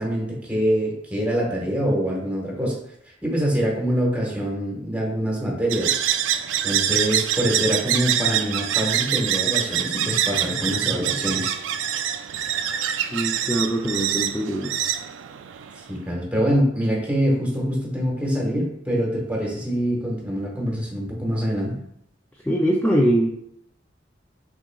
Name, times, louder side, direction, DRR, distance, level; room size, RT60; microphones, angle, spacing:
voice 1, 0.0-2.8 3.2-6.0 6.6-11.5 15.8-21.8, equal, 10° right, -3 dB, 1.2 m, -25 dB
sound 1, 5.7-15.9, right 10 dB, 85° right, 0.3 m, -25 dB
voice 2, 13.1-14.7 22.4-23.3, right 1 dB, 10° left, -2 dB, 0.4 m, -22 dB
5.9 x 3.7 x 2.3 m, 0.72 s
head